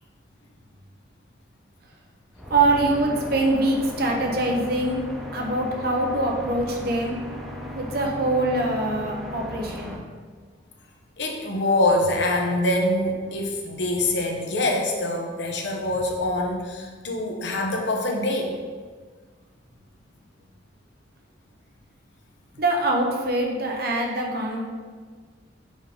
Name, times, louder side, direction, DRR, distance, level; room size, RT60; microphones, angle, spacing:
sound 1, 2.3-10.0, left 1 dB, ahead, 0.6 m, -37 dB
voice 1, 2.5-5.0 5.3-7.2 7.7-10.0 22.6-24.6, right 2 dB, 55° right, 0 dB, 0.9 m, -24 dB
voice 2, 11.2-18.5, left 1 dB, 65° left, 1 dB, 0.9 m, -24 dB
5.1 x 3.8 x 5.2 m, 1.5 s
head